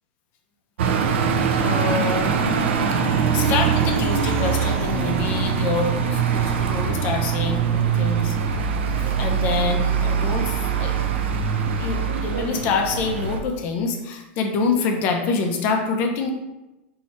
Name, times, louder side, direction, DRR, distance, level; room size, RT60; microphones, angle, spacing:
sound 1, 0.8-13.4, right 6 dB, 90° right, 0.5 m, -22 dB
voice 1, 1.6-2.3 3.3-8.4 8.9-11.0 11.8-16.3, left 4 dB, 30° left, 3 dB, 0.5 m, -26 dB
3.0 x 2.7 x 4.3 m, 1.0 s
supercardioid pair, 175°, 6 cm